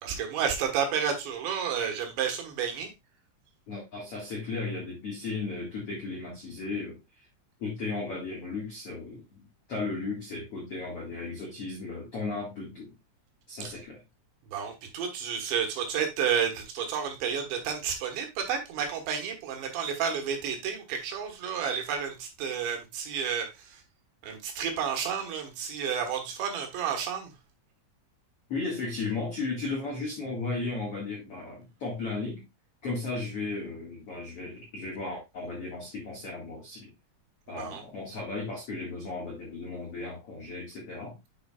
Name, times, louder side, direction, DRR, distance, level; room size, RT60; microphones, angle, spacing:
voice 1, 0.0-2.9 13.6-13.7 14.5-23.5 24.2-27.3 37.6-37.8, right 7 dB, 70° right, 3.4 m, -31 dB
voice 2, 3.7-7.3 7.6-12.9 13.5-14.0 28.5-32.4 32.8-36.9 37.5-41.2, left 3 dB, 65° left, 1.4 m, -35 dB
8.2 x 7.0 x 2.3 m
omnidirectional pair, 5.7 m